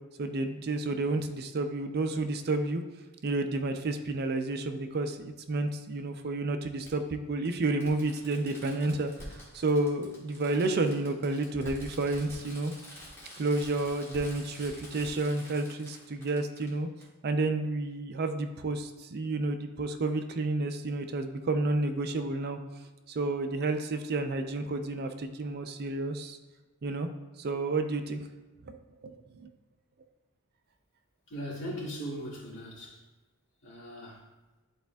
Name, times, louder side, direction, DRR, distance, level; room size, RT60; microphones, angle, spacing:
voice 1, 0.2-2.8 3.2-12.7 13.4-16.9 17.2-22.6 23.1-26.4 26.8-27.1 27.4-28.2 28.6-28.8 29.0-29.5, right 2 dB, 45° right, 7 dB, 0.4 m, -30 dB
Fireworks, 3.5-3.6 5.1-5.2 6.8-6.9 7.4-7.5 7.8-16.7 17.0-17.1, equal, 10° left, 1.8 m, -47 dB
voice 2, 31.3-33.0 33.6-34.3, equal, 60° left, -5 dB, 1.9 m, -39 dB
10.5 x 4.2 x 2.3 m, 1.2 s
head